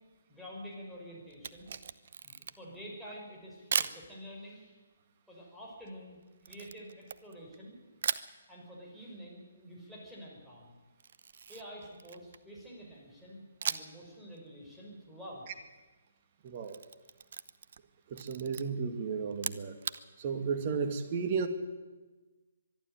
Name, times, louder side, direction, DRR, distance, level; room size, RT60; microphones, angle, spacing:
voice 1, 0.3-1.7 2.2-4.8 5.3-7.8 8.5-10.7 11.5-15.5, equal, ahead, -5 dB, 6.2 m, -48 dB
Camera, 1.3-2.8 3.7-4.0 6.4-7.6 8.0-8.3 11.0-12.5 13.6-14.0 14.4-14.5 16.5-17.9 18.1-18.6 19.3-20.0, right 7 dB, 55° right, 0.8 m, -37 dB
voice 2, 16.4-16.8 18.1-19.7 20.2-21.5, right 5 dB, 35° right, 7 dB, 2.3 m, -33 dB
23.5 x 12.0 x 9.2 m, 1.2 s
figure-of-eight pair, 140°, 0 cm